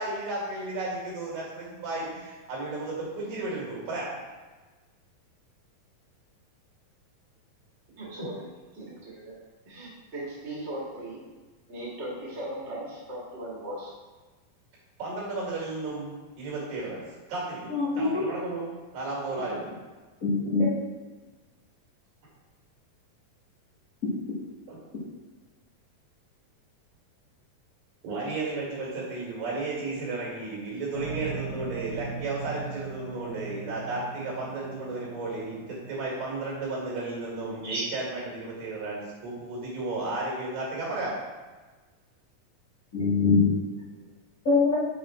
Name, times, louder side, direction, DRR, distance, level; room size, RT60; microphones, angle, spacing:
voice 1, 0.0-4.1 15.0-17.0 17.3-18.7 18.9-19.7 24.7-24.8 28.0-41.1, right 2 dB, 70° right, -4 dB, 3.7 m, -33 dB
voice 2, 8.0-8.4 8.7-9.4 9.6-11.2 11.7-13.9, right 1 dB, 25° right, -7 dB, 1.7 m, -38 dB
voice 3, 17.7-18.2 19.4-19.5 20.2-20.7 37.6-37.8 42.9-43.5 44.4-44.7, left 4 dB, 85° left, -9 dB, 0.7 m, -23 dB
sound 1, 30.9-36.0, right 4 dB, 55° left, 2.8 m, -39 dB
7.1 x 4.4 x 4.3 m, 1.3 s
omnidirectional pair, 4.1 m